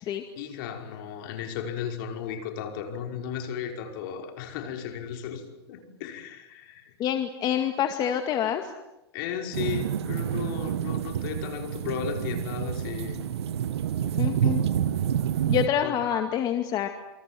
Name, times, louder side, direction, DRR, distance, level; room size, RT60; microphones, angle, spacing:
voice 1, 0.4-6.9 9.1-13.3 14.0-14.5 15.8-16.0, left 8 dB, 55° left, 5.5 m, -35 dB
voice 2, 7.0-8.7 14.1-14.6 15.5-16.9, left 9 dB, 30° left, 2.2 m, -27 dB
sound 1, 9.5-15.7, right 9 dB, 85° right, 1.6 m, -28 dB
28.0 x 24.0 x 7.8 m
supercardioid pair, 140°, 14 cm